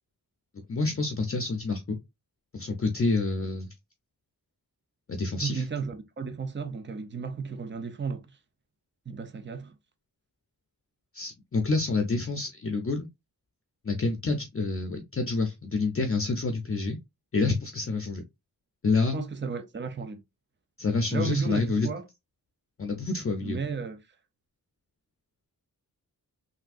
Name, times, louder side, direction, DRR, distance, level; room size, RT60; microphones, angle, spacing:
voice 1, 0.7-2.0 2.5-3.7 5.1-5.6 11.1-13.1 13.8-17.0 17.3-18.2 18.8-19.2 20.8-21.9 22.8-23.6, left 3 dB, 35° left, 0.6 m, -28 dB
voice 2, 5.4-8.3 9.1-9.7 19.1-20.2 21.1-22.0 23.4-24.0, right 5 dB, 30° right, 0.7 m, -33 dB
3.4 x 2.7 x 2.5 m
wide cardioid pair, 70°, 38 cm